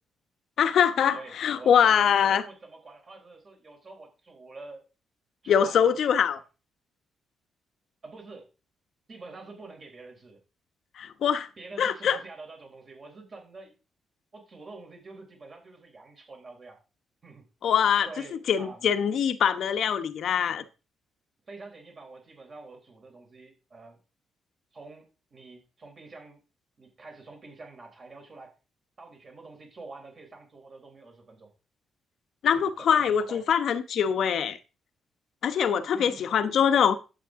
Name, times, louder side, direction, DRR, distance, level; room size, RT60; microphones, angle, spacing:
voice 1, 0.6-2.4 5.5-6.4 11.0-11.5 11.8-12.2 17.6-18.1 18.5-20.6 32.4-34.6 35.4-37.0, left 8 dB, 65° left, 1.0 m, -23 dB
voice 2, 1.1-4.8 5.4-6.2 8.0-8.5 9.1-10.4 11.6-13.7 14.3-16.8 17.2-17.4 18.0-18.8 21.4-24.0 24.7-26.4 26.8-28.5 29.0-31.5 32.5-33.4 35.9-36.3, right 3 dB, 40° right, 3.8 m, -47 dB
11.5 x 8.3 x 3.7 m
cardioid pair, 110°, 0 cm